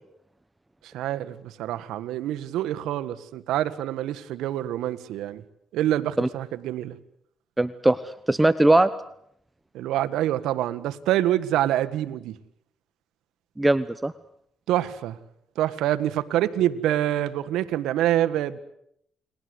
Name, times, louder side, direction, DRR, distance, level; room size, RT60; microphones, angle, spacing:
voice 1, 0.9-5.4 5.7-7.0 9.7-12.3 14.7-15.2 15.5-18.6, right 13 dB, 90° right, 11 dB, 1.7 m, -26 dB
voice 2, 7.6-8.9 13.6-14.1, right 2 dB, 10° right, 13 dB, 1.1 m, -20 dB
30.0 x 22.0 x 8.1 m, 0.73 s
cardioid pair, 90°, 0 cm